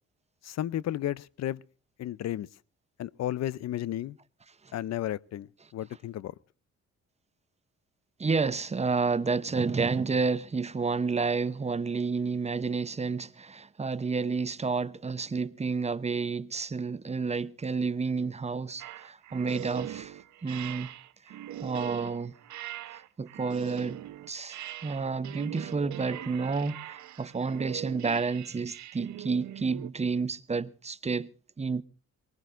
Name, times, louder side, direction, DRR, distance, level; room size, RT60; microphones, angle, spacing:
voice 1, 0.4-1.6 2.0-2.5 3.0-4.2 4.7-5.5 5.7-6.3, left 12 dB, 60° left, 0.6 m, -33 dB
voice 2, 8.2-20.9 21.6-22.3 22.9-24.0 24.3-31.3 31.6-31.8, right 4 dB, 20° right, 0.8 m, -30 dB
sound 1, 18.8-29.9, right 12 dB, 70° right, 1.0 m, -41 dB
23.5 x 20.5 x 2.6 m
cardioid pair, 90°, 30 cm